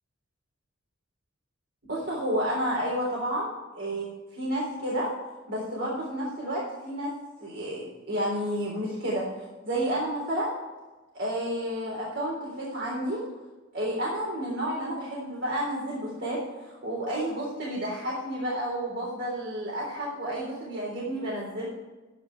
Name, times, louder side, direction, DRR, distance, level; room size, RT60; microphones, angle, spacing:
voice 1, 1.9-3.5 3.8-4.1 4.3-5.1 5.5-7.1 7.4-9.3 9.6-10.5 11.1-13.2 13.7-21.7, equal, 65° right, -5 dB, 3.7 m, -30 dB
11.0 x 10.0 x 4.7 m, 1.2 s
head